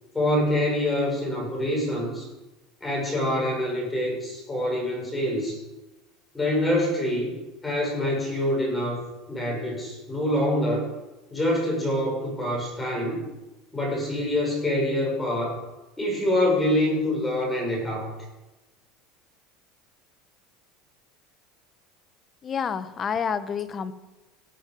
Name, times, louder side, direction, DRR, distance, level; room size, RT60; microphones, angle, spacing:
voice 1, 0.1-2.3 2.8-5.6 6.3-7.3 7.6-9.0 9.3-10.8 11.3-13.2 13.7-15.6 16.0-18.1, left 1 dB, 10° left, -2 dB, 5.9 m, -25 dB
voice 2, 22.4-23.9, left 7 dB, 25° left, 13 dB, 0.8 m, -28 dB
17.5 x 9.2 x 5.2 m, 1.1 s
supercardioid pair, 145°, 0 cm